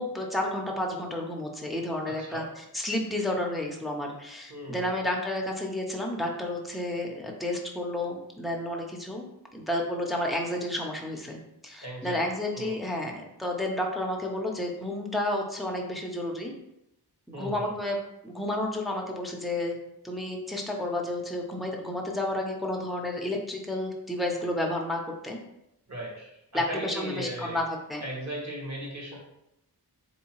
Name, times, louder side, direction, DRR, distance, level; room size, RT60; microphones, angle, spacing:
voice 1, 0.0-9.2 9.5-16.5 17.3-18.0 18.2-19.8 20.0-25.4 26.5-28.0, left 1 dB, ahead, 0 dB, 0.5 m, -31 dB
voice 2, 2.0-2.4 4.5-4.9 11.8-12.2 12.5-12.8 17.3-17.7 25.9-27.6 28.0-29.2, right 1 dB, 45° right, -3 dB, 1.2 m, -37 dB
3.6 x 2.7 x 2.9 m, 0.82 s
wide cardioid pair, 110°, 40 cm